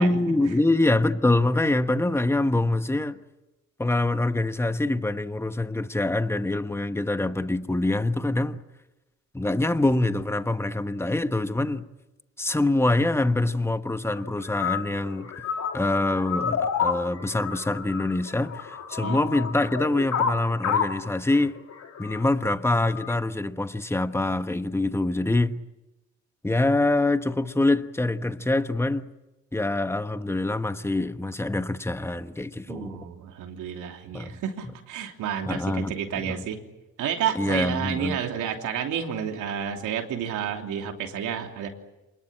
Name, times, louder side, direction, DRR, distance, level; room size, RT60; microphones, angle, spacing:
voice 1, 0.0-3.2 3.8-8.6 9.3-11.8 12.4-15.3 15.7-21.6 22.0-25.6 26.4-29.1 29.5-33.0 34.1-34.4 35.5-36.4 37.3-38.2, left 2 dB, 10° left, 1.2 m, -25 dB
sound 1, 14.1-23.1, left 7 dB, 65° left, 2.4 m, -30 dB
voice 2, 32.7-36.6 37.0-41.7, right 8 dB, 85° right, 3.1 m, -30 dB
27.0 x 20.5 x 8.8 m
cardioid pair, 90°, 30 cm